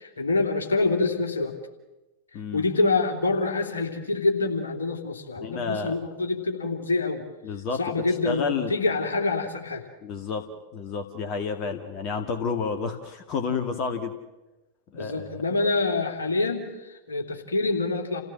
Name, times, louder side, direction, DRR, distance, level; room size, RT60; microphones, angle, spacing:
voice 1, 0.0-1.5 2.5-7.2 7.8-9.8 14.9-18.2, left 3 dB, 70° left, 2 dB, 2.9 m, -26 dB
voice 2, 2.3-2.6 5.4-6.0 7.4-8.7 10.0-10.5 10.7-14.1 14.9-15.4, left 5 dB, 35° left, 5 dB, 1.9 m, -30 dB
29.0 x 16.5 x 7.5 m, 1.1 s
figure-of-eight pair, 90°, 0 cm